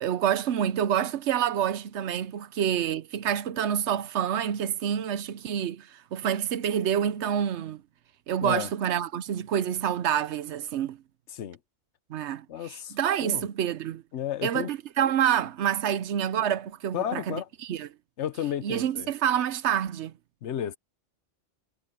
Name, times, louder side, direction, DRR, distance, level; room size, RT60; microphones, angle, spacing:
voice 1, 0.0-7.8 8.3-11.0 12.1-14.0 14.4-17.9 18.6-20.1, right 9 dB, 80° right, 1.0 m, -27 dB
voice 2, 12.5-12.9 13.2-13.4 14.1-14.7 16.9-17.5 18.2-19.1 20.4-20.8, left 10 dB, 80° left, 1.1 m, -32 dB
omnidirectional pair, 1.2 m